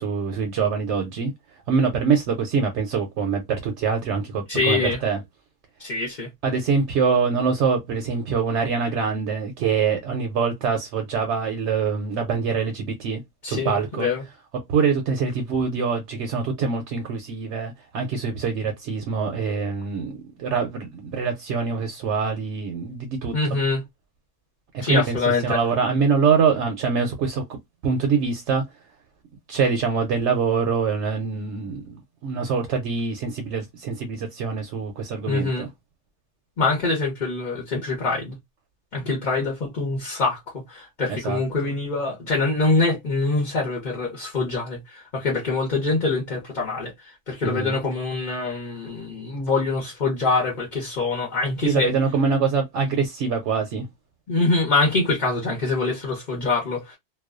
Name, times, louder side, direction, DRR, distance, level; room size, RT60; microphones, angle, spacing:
voice 1, 0.0-1.3 1.7-5.2 6.4-14.1 14.7-23.6 24.7-25.2 25.4-27.6 27.8-28.6 29.5-35.7 41.1-41.4 47.4-47.8 51.6-53.9, right 5 dB, 75° right, 0.9 m, -24 dB
voice 2, 4.5-5.0 5.8-6.3 13.4-14.2 23.3-23.8 24.8-25.6 35.3-35.7 36.6-38.4 38.9-46.9 47.3-51.9 54.3-57.0, left 3 dB, 45° left, 0.9 m, -24 dB
2.3 x 2.2 x 2.3 m
omnidirectional pair, 1.3 m